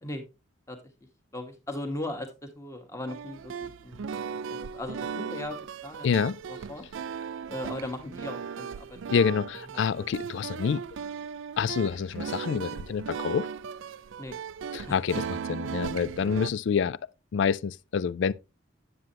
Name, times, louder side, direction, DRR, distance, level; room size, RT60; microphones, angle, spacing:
voice 1, 0.7-4.1 4.5-6.1 6.5-6.9 7.4-9.0 9.7-10.4 14.2-14.4 14.9-15.0, left 1 dB, 15° left, 1.3 m, -38 dB
sound 1, 3.1-16.5, right 6 dB, 65° right, 0.3 m, -37 dB
voice 2, 6.0-6.4 9.1-10.8 11.6-13.5 14.7-15.2 15.5-17.0 17.3-18.3, left 6 dB, 60° left, 0.3 m, -27 dB
9.4 x 7.6 x 2.8 m
head